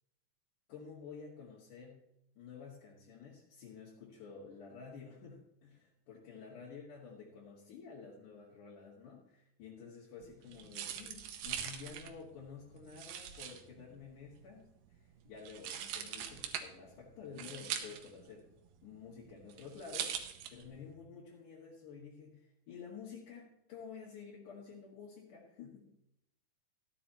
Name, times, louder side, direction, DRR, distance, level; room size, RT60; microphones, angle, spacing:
voice 1, 0.7-2.1 2.4-14.7 15.0-18.5 18.8-25.9, left 5 dB, 70° left, -6 dB, 3.4 m, -51 dB
sound 1, 10.2-20.9, right 9 dB, 85° right, 2.6 m, -43 dB
14.0 x 10.5 x 2.9 m, 0.80 s
omnidirectional pair, 3.8 m